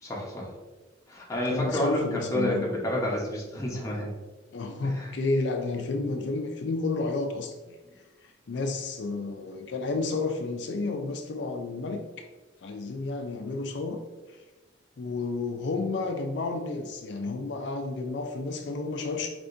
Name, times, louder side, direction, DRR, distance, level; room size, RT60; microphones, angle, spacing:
voice 1, 0.0-0.5 1.1-4.1 4.8-5.1, left 1 dB, 20° left, -3 dB, 1.0 m, -30 dB
voice 2, 1.5-2.6 4.5-7.8 8.5-12.0 12.6-14.0 15.0-19.3, left 3 dB, 75° left, 4 dB, 0.5 m, -31 dB
4.9 x 3.4 x 2.6 m, 1.2 s
head